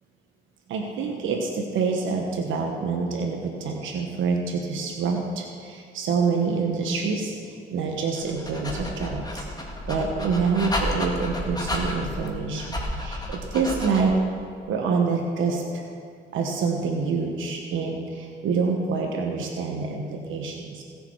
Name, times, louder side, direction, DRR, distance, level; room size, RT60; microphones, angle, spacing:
voice 1, 0.7-14.1 14.7-15.9 16.3-20.8, right 5 dB, 80° right, 1 dB, 1.3 m, -27 dB
Dog, 8.1-14.2, left 1 dB, 20° left, 1.9 m, -31 dB
17.5 x 6.9 x 4.7 m, 2.3 s
cardioid pair, 90°, 20 cm